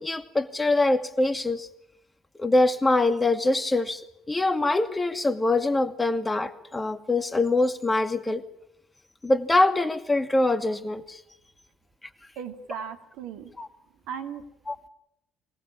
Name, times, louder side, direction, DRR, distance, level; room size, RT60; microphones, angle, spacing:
voice 1, 0.0-1.7 2.4-4.0 4.3-8.4 9.2-11.2 13.6-13.7 14.7-14.8, left 2 dB, 15° left, 9 dB, 2.3 m, -24 dB
voice 2, 12.4-13.5 14.1-14.4, right 7 dB, 65° right, 8 dB, 2.2 m, -37 dB
24.0 x 19.0 x 9.8 m, 0.82 s
hypercardioid pair, 55°, 0 cm